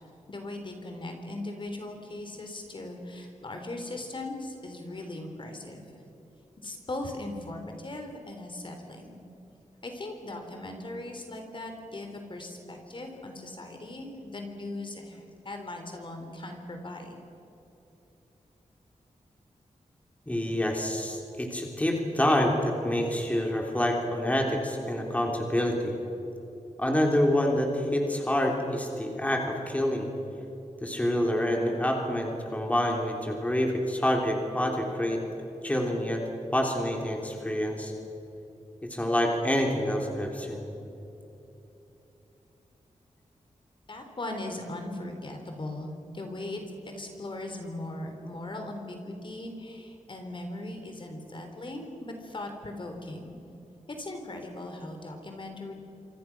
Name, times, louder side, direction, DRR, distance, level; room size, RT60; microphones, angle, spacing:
voice 1, 0.3-6.0 6.6-9.2 9.8-17.2 43.9-53.4 53.9-55.7, left 2 dB, 40° left, 4 dB, 3.7 m, -39 dB
voice 2, 20.3-25.9 26.8-30.1 30.8-35.2 35.6-36.2 36.5-37.9 38.8-40.6, left 1 dB, 10° left, 1 dB, 3.4 m, -27 dB
27.5 x 26.0 x 6.1 m, 3.0 s
wide cardioid pair, 145°, 13 cm